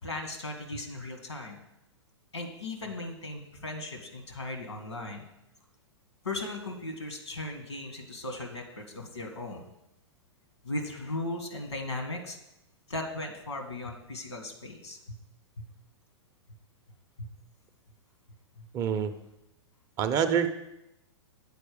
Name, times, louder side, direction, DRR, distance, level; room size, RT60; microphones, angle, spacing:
voice 1, 0.0-1.6 2.3-5.2 6.2-9.6 10.6-12.4 12.9-15.0 17.2-17.3 18.6-18.7, left 2 dB, 80° left, 3 dB, 1.7 m, -37 dB
voice 2, 18.7-19.1 20.0-20.5, right 8 dB, 25° right, 8 dB, 0.6 m, -26 dB
7.9 x 4.5 x 6.9 m, 0.88 s
figure-of-eight pair, 105°, 15 cm